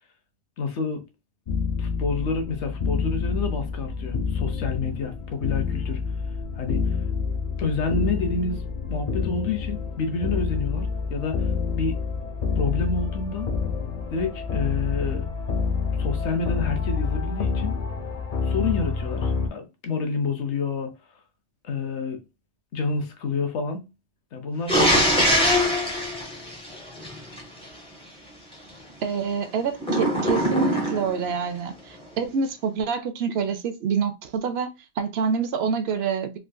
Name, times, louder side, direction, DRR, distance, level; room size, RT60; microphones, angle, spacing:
voice 1, 0.6-1.0 1.8-6.0 6.6-6.8 7.6-8.6 8.9-11.5 11.7-12.0 12.6-13.5 14.1-15.3 16.0-17.8 18.4-20.9 21.6-22.2 22.7-23.9 24.3-25.1, left 4 dB, 80° left, 1.1 m, -28 dB
sound 1, 1.5-19.5, left 5 dB, 50° left, 0.5 m, -28 dB
sound 2, 24.7-27.4 29.8-31.2, equal, 5° left, 0.8 m, -22 dB
voice 2, 29.0-34.7 35.0-36.4, right 6 dB, 70° right, 0.8 m, -27 dB
3.6 x 2.5 x 2.2 m
omnidirectional pair, 1.1 m